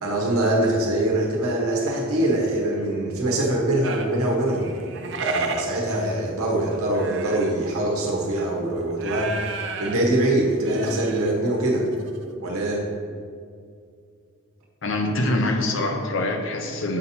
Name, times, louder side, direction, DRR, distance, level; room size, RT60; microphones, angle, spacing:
voice 1, 0.0-4.7 5.2-9.3 9.8-11.9 12.4-12.8, right 1 dB, 90° right, -1 dB, 1.2 m, -23 dB
sound 1, 3.8-7.7 8.1-8.4 8.9-10.1 10.4-11.3 11.6-11.7 11.9-12.2, right 5 dB, 55° right, 0.4 m, -33 dB
voice 2, 14.8-17.0, left 2 dB, 60° left, 4 dB, 0.7 m, -24 dB
7.4 x 2.8 x 5.6 m, 2.2 s
head